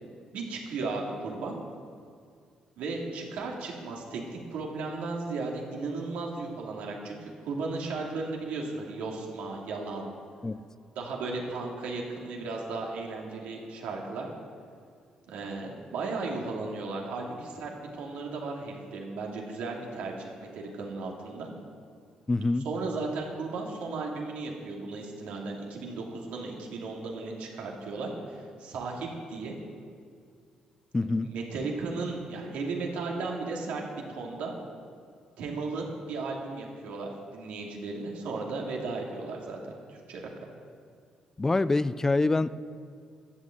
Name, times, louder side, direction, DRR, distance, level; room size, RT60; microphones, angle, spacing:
voice 1, 0.3-1.5 2.8-10.1 10.9-14.3 15.3-21.5 22.6-28.1 28.6-29.5 31.0-33.8 34.1-34.5 35.4-40.5, right 3 dB, 80° right, -1 dB, 2.7 m, -35 dB
voice 2, 22.3-22.7 30.9-31.3 41.4-42.5, left 2 dB, 20° left, 16 dB, 0.5 m, -25 dB
13.0 x 8.4 x 7.9 m, 2.2 s
supercardioid pair, 70°, 2 cm